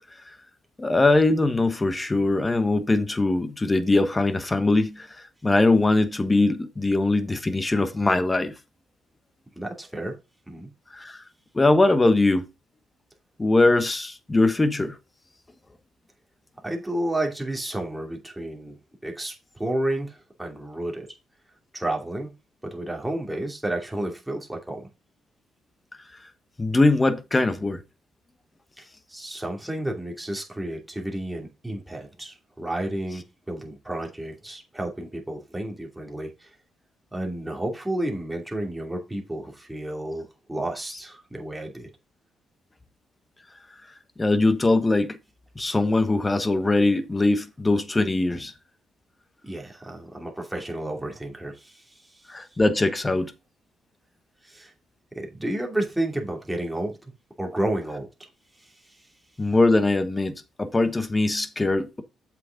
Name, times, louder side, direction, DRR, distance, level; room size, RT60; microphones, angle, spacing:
voice 1, 0.8-5.1 5.4-8.5 10.9-11.2 11.5-12.5 13.4-14.9 26.6-27.8 44.2-45.2 45.6-48.5 52.3-53.3 59.4-62.0, left 2 dB, 20° left, 1.1 m, -21 dB
voice 2, 9.6-10.1 10.5-10.7 16.6-21.1 21.7-22.3 22.6-24.9 28.8-36.5 37.1-41.9 49.4-52.2 54.4-54.7 55.1-57.0 57.4-58.3 58.6-59.0, right 1 dB, 5° right, 2.6 m, -31 dB
7.7 x 6.0 x 3.9 m
cardioid pair, 90°, 0 cm